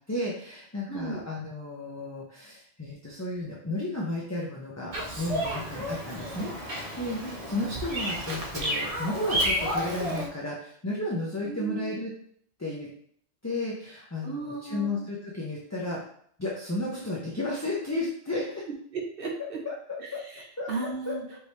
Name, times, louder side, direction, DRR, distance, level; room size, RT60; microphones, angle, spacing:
voice 1, 0.1-12.1 12.6-12.9 13.4-16.0 16.4-18.6 19.6-19.7 20.1-20.2 20.6-20.7 21.1-21.2, left 2 dB, 20° left, -4 dB, 0.6 m, -33 dB
voice 2, 0.9-1.2 7.2-7.3 11.4-12.0 14.2-14.9 18.9-19.6 20.0-20.1 20.3-20.4 20.7-21.2, right 4 dB, 55° right, -1 dB, 1.2 m, -35 dB
Bird vocalization bird call bird song, 4.9-10.3, equal, 35° right, 0.8 m, -31 dB
5.1 x 2.8 x 3.2 m, 0.62 s
omnidirectional pair, 1.1 m